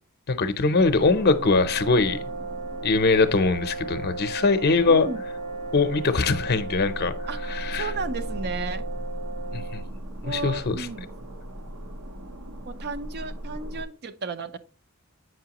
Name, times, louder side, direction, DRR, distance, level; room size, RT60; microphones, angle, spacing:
voice 1, 0.3-2.2 2.8-5.1 5.7-7.9 9.5-9.8 10.2-10.9, left 3 dB, 45° left, 0.6 m, -22 dB
sound 1, 0.8-13.9, right 1 dB, 70° right, 0.9 m, -38 dB
sound 2, 1.0-10.0, right 3 dB, 90° right, 2.5 m, -36 dB
voice 2, 4.9-5.2 7.3-8.8 10.2-11.1 12.7-14.6, right 4 dB, 50° right, 0.6 m, -34 dB
7.8 x 5.6 x 2.9 m
head